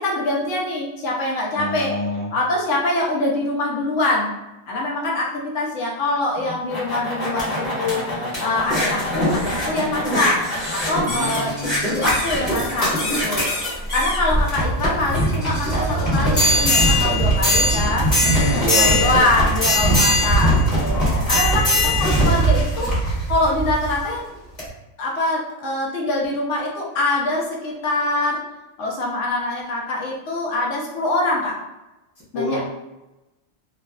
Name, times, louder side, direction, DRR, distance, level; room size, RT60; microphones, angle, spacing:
voice 1, 0.0-2.0 2.3-4.3 4.7-10.4 10.7-11.5 11.8-13.5 13.9-20.6 20.8-21.0 21.3-22.9 23.3-24.3 25.0-28.4 28.8-31.6 32.3-32.6, left 2 dB, 75° left, -3 dB, 1.0 m, -24 dB
voice 2, 1.5-2.3 11.0-11.8 18.2-19.3 20.9-21.3 32.3-32.6, equal, 20° right, -9 dB, 0.5 m, -26 dB
sound 1, 6.4-24.0 24.6-24.7, equal, 35° left, 1.1 m, -21 dB
2.5 x 2.3 x 2.3 m, 1.0 s
omnidirectional pair, 1.3 m